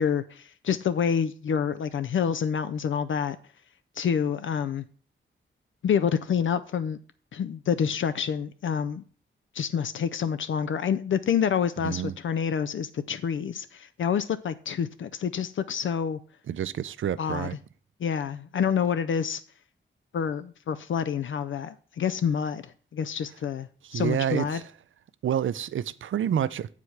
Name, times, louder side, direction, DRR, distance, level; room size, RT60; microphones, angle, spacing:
voice 1, 0.0-3.4 4.0-4.8 5.8-7.0 7.3-9.0 9.5-16.2 17.2-17.5 18.0-19.4 20.1-24.6, left 7 dB, 70° left, 0.4 m, -27 dB
voice 2, 11.8-12.1 16.5-17.6 23.9-24.6 25.2-26.7, right 9 dB, 70° right, 0.4 m, -28 dB
8.0 x 4.9 x 5.6 m
wide cardioid pair, 135°, 21 cm